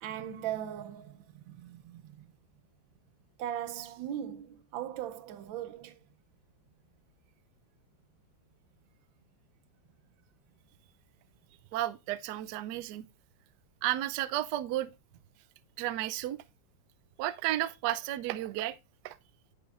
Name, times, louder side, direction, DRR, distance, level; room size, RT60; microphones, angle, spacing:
voice 1, 0.0-2.3 3.4-6.0, right 10 dB, 90° right, 1.5 m, -39 dB
voice 2, 11.7-13.1 13.8-14.9 15.8-16.4 17.2-18.8 19.0-19.2, right 14 dB, 75° right, 1.1 m, -32 dB
10.0 x 6.9 x 2.4 m
omnidirectional pair, 2.1 m